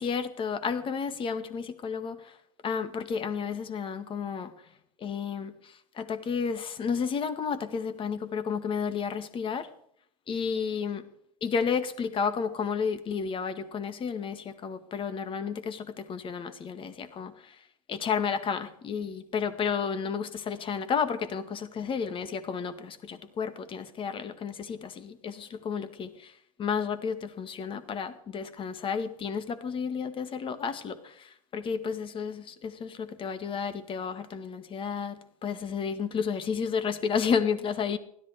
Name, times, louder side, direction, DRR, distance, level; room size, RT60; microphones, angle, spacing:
voice 1, 0.0-2.2 2.6-4.5 5.0-5.5 6.0-9.7 10.3-11.0 11.4-17.3 17.9-26.1 26.6-31.0 31.5-38.0, left 6 dB, 30° left, 1.9 m, -31 dB
16.5 x 13.5 x 4.9 m
hypercardioid pair, 110°, 19 cm